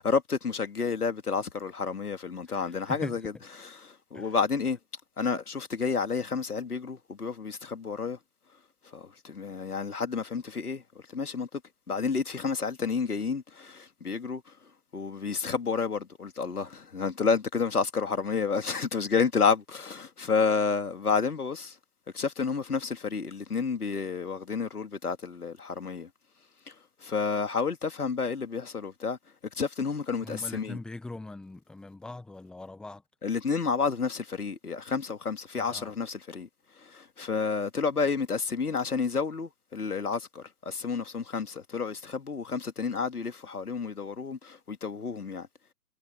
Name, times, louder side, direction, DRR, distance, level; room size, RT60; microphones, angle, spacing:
voice 1, 0.0-3.2 3.9-4.8 5.2-8.2 8.9-10.8 11.1-11.6 11.9-14.4 14.9-21.7 22.1-26.1 27.0-29.2 29.5-30.8 33.2-36.5 36.8-45.5, left 5 dB, 70° left, 2.6 m, -30 dB
voice 2, 2.5-3.2 4.1-4.4 30.2-33.0 35.6-36.0, left 2 dB, ahead, 1.5 m, -42 dB
figure-of-eight pair, 140°, 47 cm